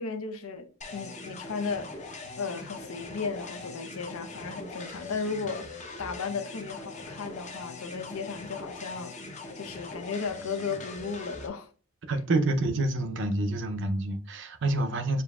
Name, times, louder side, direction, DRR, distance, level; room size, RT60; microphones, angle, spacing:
voice 1, 0.0-11.7, left 5 dB, 75° left, 0.6 m, -35 dB
sound 1, 0.8-11.5, left 2 dB, 35° left, 0.6 m, -42 dB
voice 2, 12.1-15.2, right 2 dB, 55° right, 0.6 m, -27 dB
6.8 x 2.5 x 2.3 m
head